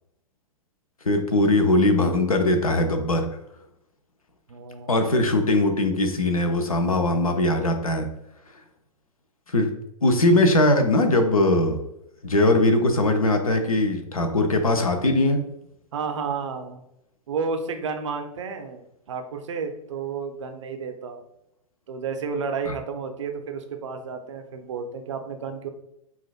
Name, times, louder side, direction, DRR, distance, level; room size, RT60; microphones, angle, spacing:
voice 1, 1.1-3.2 4.9-8.1 9.5-9.7 10.0-11.8 12.2-15.4 22.7-22.8, left 2 dB, 75° left, 6 dB, 0.7 m, -20 dB
voice 2, 4.5-5.0 15.9-16.8 17.3-21.2 21.9-25.7, right 5 dB, 55° right, 6 dB, 0.6 m, -31 dB
5.6 x 2.4 x 2.4 m, 0.81 s
figure-of-eight pair, 110°, 18 cm